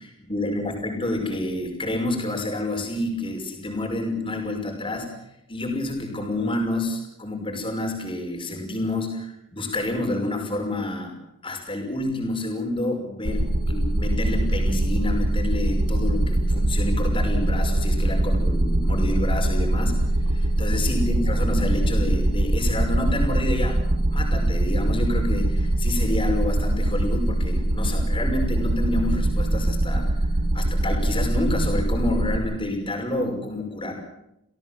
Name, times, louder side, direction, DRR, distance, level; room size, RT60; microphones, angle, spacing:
voice 1, 0.3-5.1 5.5-11.1 11.4-30.3 30.5-33.9, left 1 dB, 25° left, 2 dB, 5.6 m, -28 dB
sound 1, 13.3-32.4, right 1 dB, 90° right, 2.3 m, -23 dB
29.0 x 17.0 x 7.5 m, 0.84 s
head